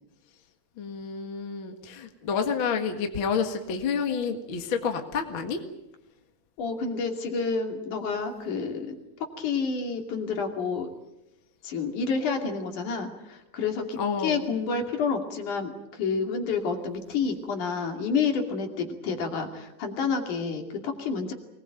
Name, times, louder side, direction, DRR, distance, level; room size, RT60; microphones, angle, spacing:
voice 1, 0.8-5.6 14.0-14.4, left 6 dB, 45° left, 5 dB, 2.1 m, -29 dB
voice 2, 6.6-9.0 9.4-10.9 11.6-21.3, left 5 dB, 60° left, 4 dB, 4.0 m, -29 dB
24.0 x 20.0 x 9.1 m, 0.88 s
omnidirectional pair, 4.1 m